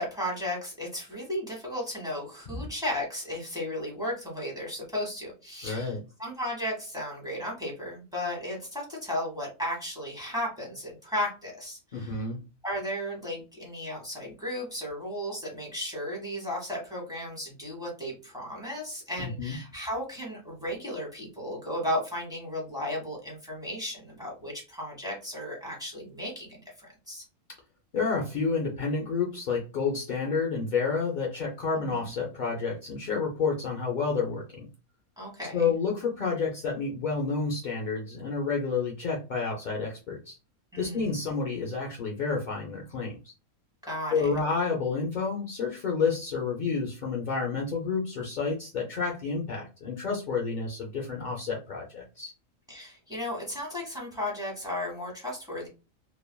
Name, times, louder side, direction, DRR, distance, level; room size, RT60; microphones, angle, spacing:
voice 1, 0.0-12.2 12.6-27.2 31.7-32.1 35.2-35.7 40.7-41.1 43.8-44.3 52.7-55.7, left 1 dB, 5° right, -3 dB, 1.1 m, -35 dB
voice 2, 5.6-6.0 11.9-12.4 19.2-19.6 27.9-34.7 35.5-40.4 40.8-43.3 44.1-52.3, left 4 dB, 75° left, -1 dB, 0.4 m, -30 dB
3.2 x 2.2 x 2.2 m, 0.30 s
omnidirectional pair, 1.5 m